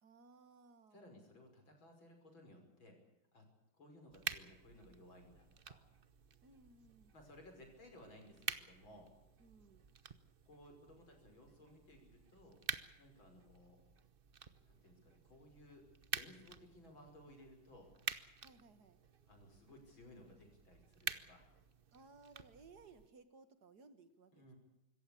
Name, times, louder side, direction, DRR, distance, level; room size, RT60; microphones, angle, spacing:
voice 1, 0.0-1.0 6.4-7.1 9.4-9.8 18.4-19.0 21.9-24.5, right 4 dB, 55° right, 10 dB, 2.2 m, -62 dB
voice 2, 0.9-3.0 3.3-3.4 3.8-5.8 7.1-9.1 10.4-12.6 13.0-13.8 14.6-17.9 19.3-21.5 24.3-24.6, left 1 dB, 75° left, 3 dB, 6.6 m, -60 dB
sound 1, 4.1-23.1, right 6 dB, 40° right, 0.8 m, -49 dB
25.5 x 15.0 x 8.6 m, 0.94 s
omnidirectional pair, 2.2 m